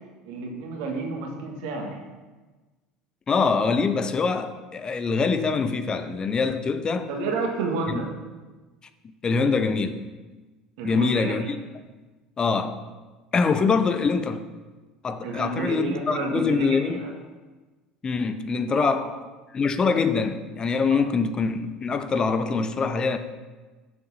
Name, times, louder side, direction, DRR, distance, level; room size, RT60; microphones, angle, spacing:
voice 1, 0.2-2.0 7.1-8.1 10.8-11.4 15.2-17.1 18.8-19.0 20.9-21.0, right 3 dB, 65° right, 2 dB, 1.7 m, -30 dB
voice 2, 3.3-7.1 7.9-8.0 9.2-10.0 10.8-11.6 12.4-12.8 13.3-14.4 15.0-17.0 18.0-19.1 19.5-23.2, left 4 dB, 30° left, 9 dB, 0.7 m, -24 dB
7.0 x 6.6 x 5.6 m, 1.3 s
hypercardioid pair, 70°, 3 cm